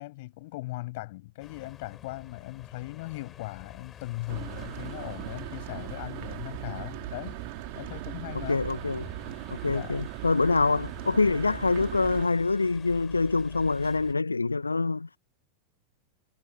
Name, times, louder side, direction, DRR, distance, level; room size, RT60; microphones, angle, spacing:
voice 1, 0.0-7.4 7.7-8.6 9.7-10.0, left 20 dB, 50° left, 6.2 m, -39 dB
sound 1, 1.4-14.1, left 9 dB, 25° left, 5.9 m, -49 dB
sound 2, 4.3-12.3, right 28 dB, 45° right, 3.4 m, -39 dB
voice 2, 8.3-9.1 9.5-15.2, left 3 dB, 80° left, 1.4 m, -25 dB
figure-of-eight pair, 90°, 0 cm